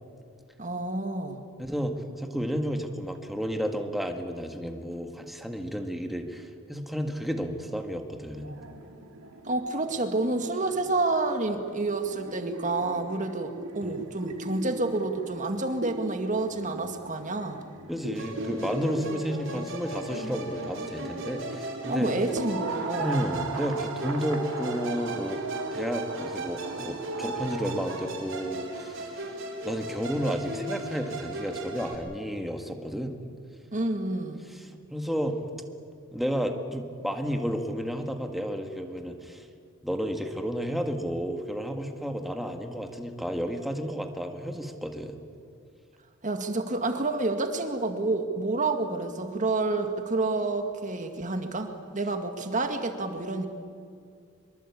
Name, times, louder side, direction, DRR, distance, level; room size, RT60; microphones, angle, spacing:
voice 1, 0.6-1.4 9.4-17.6 21.9-23.3 33.7-34.4 46.2-53.5, right 2 dB, 35° right, 6 dB, 2.0 m, -29 dB
voice 2, 1.6-8.6 13.8-14.0 17.9-22.1 23.0-25.4 25.7-29.2 29.6-33.2 34.5-34.6 34.9-35.4 36.1-39.5 39.8-45.2, equal, ahead, 4 dB, 1.7 m, -32 dB
sound 1, 8.3-28.2, right 2 dB, 85° right, 2.5 m, -39 dB
Musical instrument, 18.1-32.0, right 2 dB, 60° right, 4.2 m, -37 dB
24.0 x 23.0 x 8.5 m, 2.3 s
head